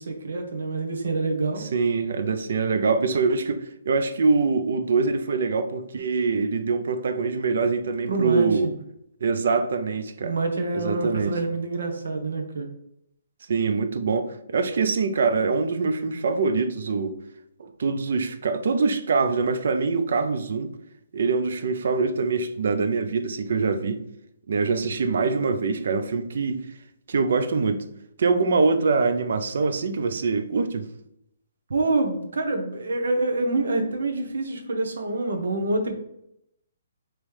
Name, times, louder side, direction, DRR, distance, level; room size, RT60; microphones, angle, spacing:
voice 1, 0.0-1.7 8.1-8.7 10.2-12.7 31.7-35.9, right 2 dB, 85° right, 1.0 m, -26 dB
voice 2, 1.6-8.7 9.2-10.3 10.7-11.3 13.5-17.2 17.6-20.7 21.1-24.0 24.5-26.7 27.1-27.8 28.2-30.9, right 4 dB, 55° right, 0.5 m, -24 dB
5.3 x 3.0 x 3.2 m
hypercardioid pair, 180°, 0 cm